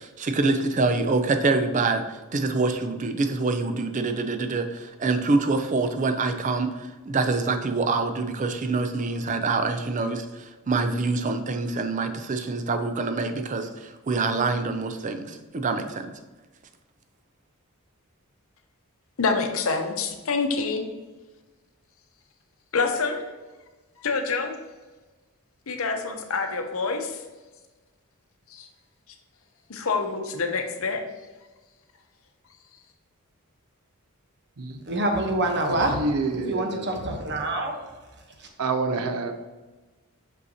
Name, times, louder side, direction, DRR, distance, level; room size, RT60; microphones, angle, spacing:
voice 1, 0.2-2.0 2.3-4.7 5.0-6.7 7.1-10.2 10.7-13.7 14.1-16.1, right 3 dB, 35° right, 8 dB, 0.4 m, -25 dB
voice 2, 19.2-20.8 22.7-23.2 24.0-24.5 25.7-27.2 28.5-28.7 29.7-31.0, left 4 dB, 65° left, 5 dB, 0.7 m, -26 dB
voice 3, 34.9-36.0 36.5-37.7 38.4-38.5, right 1 dB, 50° right, 3 dB, 1.0 m, -26 dB
voice 4, 35.8-37.2 38.6-39.3, right 3 dB, 85° right, 7 dB, 0.6 m, -28 dB
6.3 x 5.3 x 2.8 m, 1.2 s
head